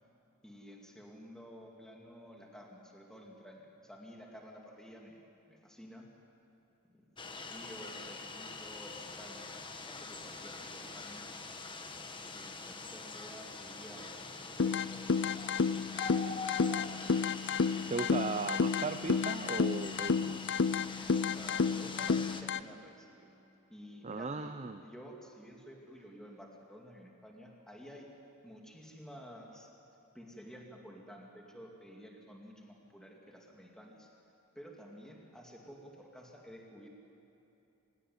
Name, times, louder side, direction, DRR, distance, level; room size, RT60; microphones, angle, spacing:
voice 1, 0.4-5.2 5.5-6.1 6.9-7.1 7.3-11.2 12.3-15.9 16.3-16.9 17.8-18.4 21.0-23.3 23.7-24.5 24.8-28.1 28.4-29.7 30.1-34.1 34.5-36.9, equal, 5° left, -1 dB, 2.5 m, -52 dB
sound 1, 7.2-22.4, left 3 dB, 25° left, 1.3 m, -44 dB
sound 2, 14.6-22.6, left 5 dB, 55° left, 0.5 m, -31 dB
voice 2, 17.9-20.5 24.0-24.8, right 4 dB, 30° right, 8 dB, 0.7 m, -37 dB
25.5 x 17.0 x 9.6 m, 2.9 s
head